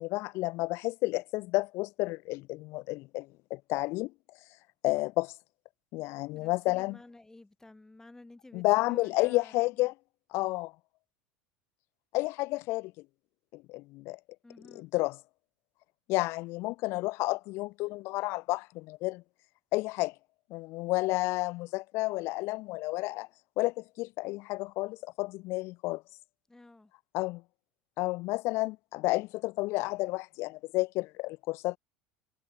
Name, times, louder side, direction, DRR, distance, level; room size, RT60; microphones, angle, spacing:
voice 1, 0.0-4.1 4.8-5.3 5.9-7.0 8.5-9.9 10.3-10.7 12.1-12.9 13.5-14.2 14.7-15.2 16.1-19.2 19.7-20.1 20.5-23.3 23.6-26.0 27.1-27.4 28.0-31.8, left 21 dB, 55° left, 0.3 m, -31 dB
voice 2, 6.3-9.6 14.4-14.9 26.5-26.9, left 2 dB, 10° left, 1.5 m, -52 dB
hypercardioid pair, 80°, 5 cm